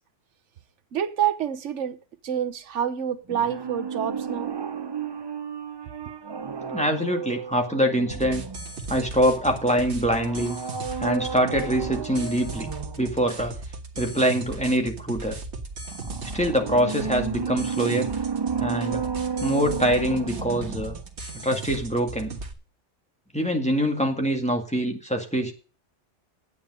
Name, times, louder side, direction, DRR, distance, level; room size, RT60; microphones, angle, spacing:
voice 1, 0.9-2.0 2.2-4.5, right 9 dB, 85° right, 1.2 m, -27 dB
sound 1, 3.3-9.0 10.1-13.1 15.9-21.1 21.4-21.5, right 6 dB, 40° right, 0.4 m, -32 dB
voice 2, 6.6-8.4 8.9-10.6 11.0-12.7 13.0-13.6 14.0-15.4 16.3-18.1 18.6-19.0 19.4-21.0 21.4-22.3 23.3-25.5, equal, 5° left, 1.9 m, -24 dB
sound 2, 8.1-22.5, right 3 dB, 65° right, 1.7 m, -37 dB
10.5 x 8.8 x 5.5 m
omnidirectional pair, 1.2 m